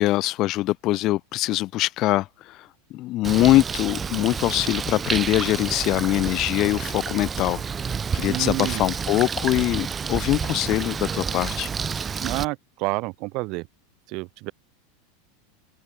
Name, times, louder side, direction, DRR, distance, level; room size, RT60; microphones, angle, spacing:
voice 1, 0.0-7.6 8.1-11.7, left 17 dB, 45° left, 0.3 m, -23 dB
Bird, 3.2-12.4, right 6 dB, 25° right, 0.7 m, -29 dB
voice 2, 8.3-8.9 12.2-13.7 14.1-14.5, right 25 dB, 55° right, 1.5 m, -29 dB
open air
hypercardioid pair, 105°, 0 cm